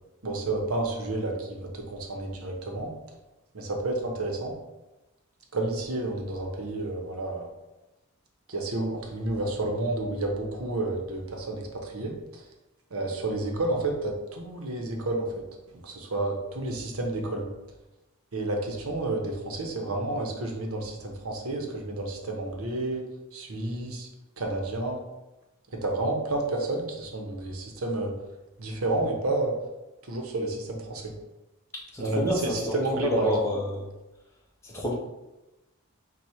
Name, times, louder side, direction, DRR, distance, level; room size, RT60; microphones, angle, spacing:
voice 1, 0.2-2.9 3.5-4.5 5.5-7.5 8.5-12.1 12.9-15.3 15.8-17.5 18.3-23.0 23.3-24.1 24.4-25.0 25.8-28.1 28.6-29.5 30.1-31.1 32.0-33.3, right 2 dB, 80° right, 2 dB, 0.9 m, -30 dB
voice 2, 31.9-33.8 34.6-34.9, equal, 15° left, -4 dB, 0.7 m, -28 dB
4.7 x 2.3 x 4.2 m, 1.0 s
head